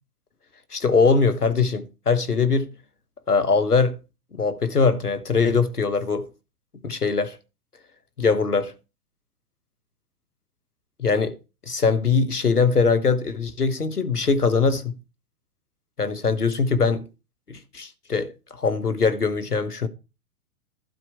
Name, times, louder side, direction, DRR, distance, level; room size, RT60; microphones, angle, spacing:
voice 1, 0.7-2.7 3.3-4.0 4.4-6.3 6.8-7.4 8.2-8.7 11.0-11.3 11.7-15.0 16.0-17.0 17.5-19.9, left 4 dB, 90° left, 1.4 m, -22 dB
12.0 x 4.5 x 8.1 m
figure-of-eight pair, 110°, 45 cm